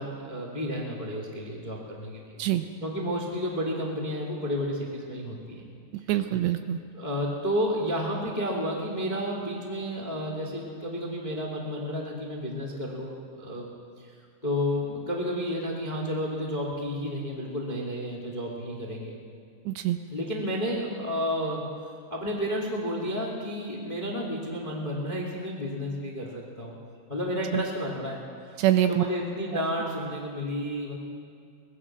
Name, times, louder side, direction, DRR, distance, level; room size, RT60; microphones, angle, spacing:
voice 1, 0.0-2.3 2.8-5.7 6.9-13.7 14.0-14.1 14.4-19.1 20.1-21.6 22.1-26.7 27.1-28.2 28.5-28.6 28.9-31.0, equal, 15° left, -1 dB, 1.6 m, -31 dB
voice 2, 5.9-6.8 19.7-20.0 27.5-27.6 28.6-29.0 29.5-29.6, right 13 dB, 80° right, 8 dB, 2.8 m, -25 dB
24.0 x 20.0 x 6.2 m, 2.2 s
omnidirectional pair, 5.3 m